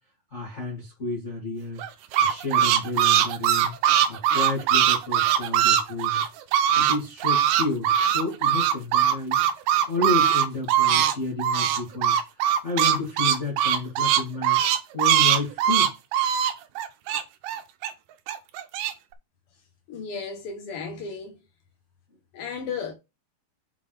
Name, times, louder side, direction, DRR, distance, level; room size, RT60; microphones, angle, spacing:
voice 1, 0.3-1.8 2.2-3.7 4.1-6.2 6.8-9.4 9.9-14.6 14.9-15.9, left 3 dB, 25° left, 2.2 m, -31 dB
sound 1, 1.8-7.0 7.2-11.1 11.4-17.9 18.3-18.9, right 10 dB, 85° right, 2.4 m, -21 dB
voice 2, 19.9-21.4 22.3-22.9, left 5 dB, 75° left, 1.3 m, -34 dB
5.9 x 5.9 x 3.2 m
omnidirectional pair, 4.0 m